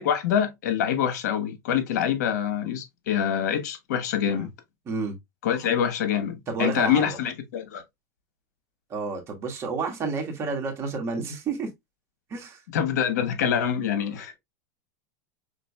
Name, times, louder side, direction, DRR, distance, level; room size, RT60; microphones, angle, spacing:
voice 1, 0.0-4.5 5.4-7.8 12.7-14.4, left 8 dB, 80° left, 1.3 m, -25 dB
voice 2, 4.9-5.2 6.5-7.2 8.9-11.7 12.3-12.6, right 4 dB, 30° right, 1.7 m, -30 dB
6.0 x 3.7 x 2.3 m
supercardioid pair, 140°, 9 cm